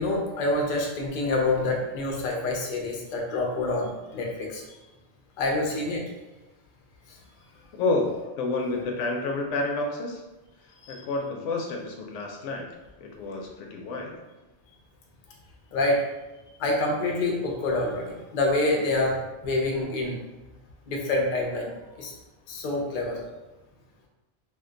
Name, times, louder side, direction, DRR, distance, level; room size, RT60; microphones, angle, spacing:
voice 1, 0.0-4.6 5.4-6.0 10.8-11.0 15.7-16.0 16.6-20.2 20.9-21.7 22.0-22.1 22.5-23.2, left 2 dB, 55° left, 0 dB, 0.6 m, -27 dB
voice 2, 7.7-10.2 10.9-12.7 13.0-14.1, left 3 dB, 85° left, 1 dB, 0.9 m, -29 dB
2.5 x 2.2 x 3.7 m, 1.1 s
omnidirectional pair, 1.2 m